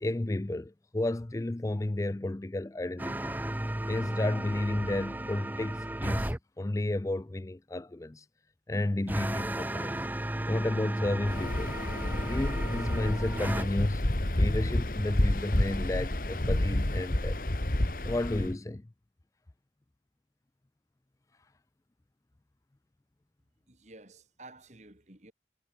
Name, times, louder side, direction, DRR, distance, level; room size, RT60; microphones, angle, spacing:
voice 1, 0.0-3.4 3.9-8.2 8.7-10.0 10.5-11.8 12.2-14.0 14.4-17.4 18.0-18.8, left 1 dB, 20° left, 0.4 m, -32 dB
sound 1, 3.0-6.4 9.1-13.7, right 1 dB, 10° right, 0.7 m, -34 dB
Waves surf, 11.2-18.5, left 1 dB, 50° left, 1.6 m, -29 dB
voice 2, 23.7-25.3, right 2 dB, 40° right, 2.5 m, -52 dB
head